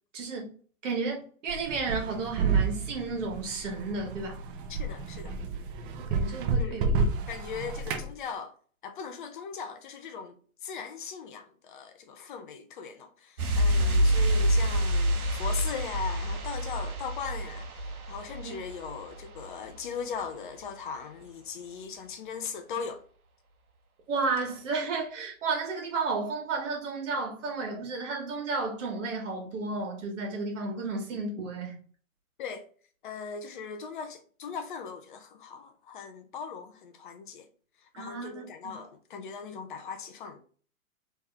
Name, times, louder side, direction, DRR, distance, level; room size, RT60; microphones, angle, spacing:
voice 1, 0.1-0.5 0.8-4.4 6.1-7.1 13.8-13.9 18.4-18.5 24.1-31.8 37.9-38.7, right 4 dB, 60° right, 1.9 m, -32 dB
sound 1, 1.5-8.1, right 4 dB, 40° right, 0.9 m, -30 dB
voice 2, 4.7-5.4 6.6-6.8 7.3-8.5 8.8-10.3 10.6-23.0 32.4-32.6 33.0-37.5 37.8-40.4, left 6 dB, 40° left, 0.5 m, -39 dB
sound 2, 13.4-19.9 20.1-20.3, equal, 85° right, 0.9 m, -27 dB
3.4 x 3.0 x 3.4 m
hypercardioid pair, 120°, 42 cm